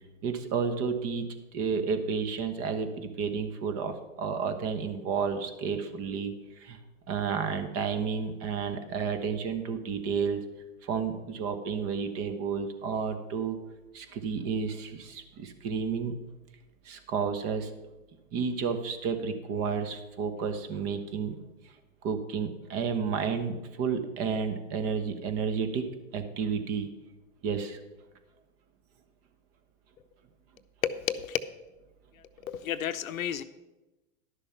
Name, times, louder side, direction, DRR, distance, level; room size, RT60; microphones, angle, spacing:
voice 1, 0.2-1.3 1.5-6.8 7.1-10.4 10.8-13.6 13.9-16.1 16.8-17.7 18.3-21.3 21.6-21.7 22.0-26.9 27.4-27.8, right 6 dB, 35° right, 8 dB, 1.3 m, -31 dB
voice 2, 30.8-31.4 32.4-33.4, left 9 dB, 80° left, 12 dB, 0.8 m, -31 dB
11.0 x 6.8 x 5.7 m, 1.1 s
hypercardioid pair, 120°, 40 cm